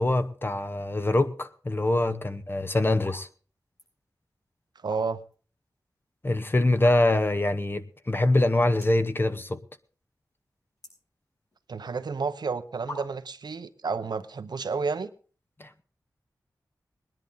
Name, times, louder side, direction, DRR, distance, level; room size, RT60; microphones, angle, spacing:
voice 1, 0.0-3.3 6.2-9.6 15.6-15.8, left 2 dB, 30° left, 0.9 m, -24 dB
sound 1, 2.9-3.2 3.5-3.9 4.7-5.4 5.8-5.9 6.7-7.3 7.8-7.9 8.1-8.2 8.7-9.1 9.5-10.0 10.3-11.7 12.4-12.5 12.9-13.4, left 1 dB, 60° left, 6.8 m, -43 dB
voice 2, 4.8-5.2 11.7-15.1, right 4 dB, 75° right, 0.8 m, -31 dB
20.0 x 10.5 x 3.9 m
wide cardioid pair, 70°, 7 cm